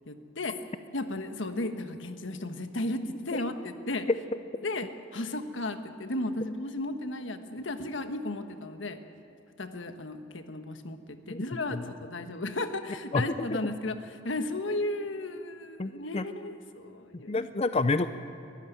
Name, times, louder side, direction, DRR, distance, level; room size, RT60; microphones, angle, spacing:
voice 1, 0.1-0.6 0.9-4.1 4.6-9.0 9.6-17.3, left 2 dB, 80° left, 8 dB, 1.4 m, -34 dB
voice 2, 15.8-16.3 17.3-18.1, left 3 dB, 35° left, 11 dB, 0.5 m, -28 dB
22.5 x 14.0 x 9.3 m, 2.9 s
head